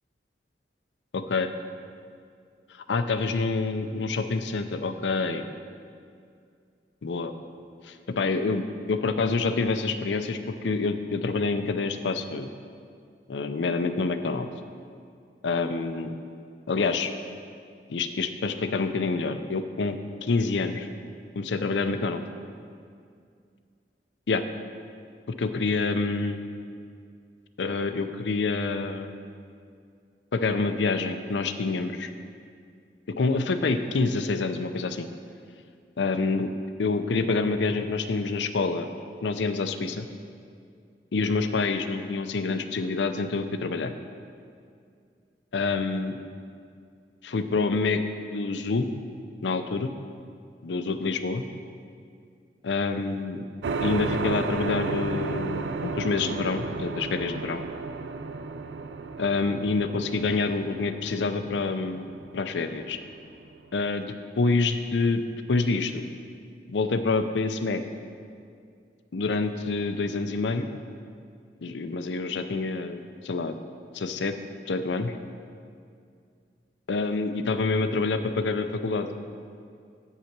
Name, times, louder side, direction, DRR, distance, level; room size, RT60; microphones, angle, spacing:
voice 1, 1.1-1.5 2.9-5.5 7.0-7.3 7.8-8.6 8.9-12.5 13.3-14.5 15.4-16.1 16.7-17.1 17.9-20.9 21.4-22.2 24.3-24.4 25.4-26.4 27.6-29.2 30.3-32.1 33.2-35.1 36.0-36.5 36.8-38.9 39.2-40.1 41.1-43.9 45.5-46.2 47.2-48.0 48.3-48.9 49.4-49.9 50.6-51.4 52.6-53.4 53.8-57.6 59.2-62.0 62.3-63.0 63.7-64.1 64.4-65.2 65.5-66.0 66.7-67.8 69.1-70.7 71.6-73.6 73.9-74.3 74.7-75.1 76.9-79.1, left 3 dB, 85° left, 9 dB, 0.5 m, -27 dB
sound 1, 53.6-63.8, right 4 dB, 85° right, 0.4 m, -33 dB
8.4 x 5.6 x 5.9 m, 2.3 s
head